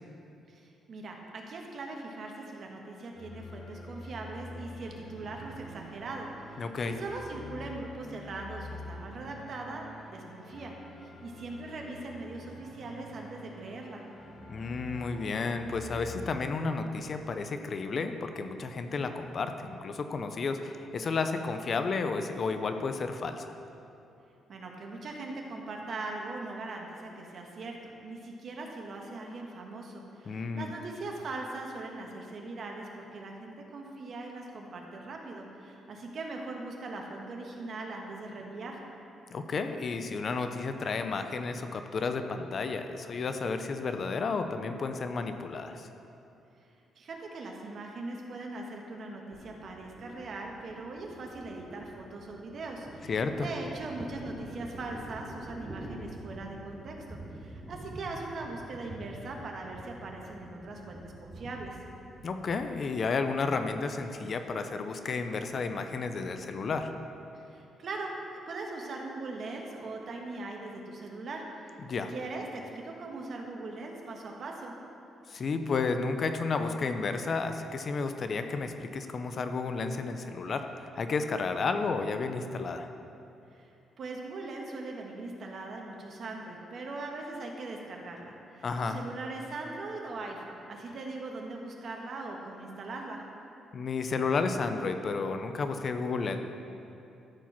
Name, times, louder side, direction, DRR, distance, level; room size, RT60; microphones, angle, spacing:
voice 1, 0.5-14.0 24.5-38.8 47.0-61.8 67.3-68.1 68.5-71.8 72.1-74.7 83.5-83.7 84.0-93.2, right 2 dB, 55° right, 1 dB, 1.4 m, -40 dB
sound 1, 3.1-17.7, left 1 dB, 85° left, 1.8 m, -47 dB
voice 2, 6.6-7.0 14.5-23.5 30.3-30.7 39.3-45.9 53.1-53.5 62.2-66.9 71.9-72.1 75.3-82.9 88.6-89.0 93.7-96.4, left 4 dB, 50° left, 7 dB, 0.6 m, -32 dB
Thunder, 49.3-64.1, right 1 dB, 25° right, 1.4 m, -47 dB
13.0 x 4.6 x 6.0 m, 2.7 s
cardioid pair, 90°, 0 cm